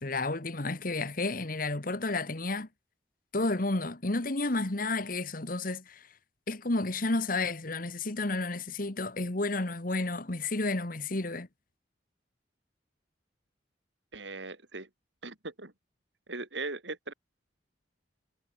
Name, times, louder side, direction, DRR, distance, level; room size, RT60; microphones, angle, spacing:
voice 1, 0.0-2.7 3.3-6.0 6.5-11.5, left 2 dB, 45° left, 1.5 m, -31 dB
voice 2, 14.1-14.9 15.2-15.7 16.3-17.1, right 3 dB, 70° right, 3.6 m, -39 dB
head